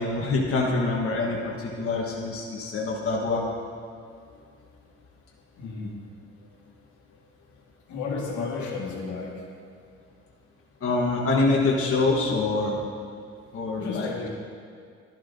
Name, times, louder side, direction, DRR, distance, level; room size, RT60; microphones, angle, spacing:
voice 1, 0.0-3.4 10.8-12.8 13.5-14.1, left 3 dB, 45° left, -3 dB, 1.2 m, -25 dB
voice 2, 5.6-5.9 7.9-9.4 13.8-14.3, left 4 dB, 75° left, -2 dB, 1.8 m, -33 dB
12.0 x 10.5 x 2.6 m, 2.2 s
cardioid pair, 90°, 30 cm